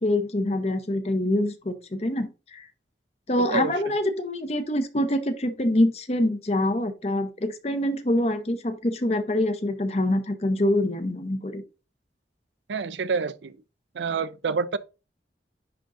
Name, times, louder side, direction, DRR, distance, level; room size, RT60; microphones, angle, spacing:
voice 1, 0.0-2.7 3.3-11.6, left 1 dB, 35° left, 0.8 m, -25 dB
voice 2, 12.7-13.6 13.9-14.8, right 5 dB, 85° right, 0.5 m, -27 dB
10.0 x 3.8 x 2.6 m
head